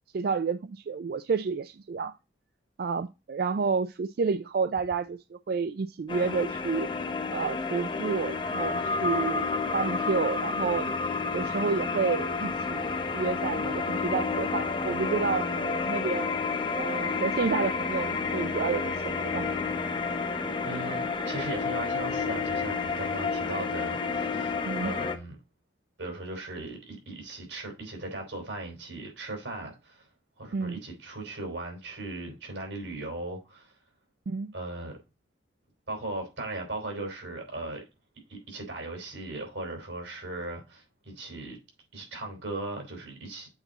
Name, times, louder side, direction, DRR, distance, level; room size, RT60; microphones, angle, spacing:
voice 1, 0.1-2.1 2.8-6.9 7.3-9.5 9.7-10.9 11.3-16.3 16.7-19.5 24.6-24.9 30.5-30.8 34.3-34.5, right 5 dB, 55° right, 0.3 m, -30 dB
sound 1, 6.1-25.2, left 4 dB, 25° left, 0.7 m, -30 dB
voice 2, 20.6-25.4 26.0-30.1 30.4-33.7 34.5-35.0 35.9-37.8 38.3-41.6 41.9-43.5, right 2 dB, 85° right, 3.8 m, -38 dB
8.0 x 4.2 x 4.0 m
head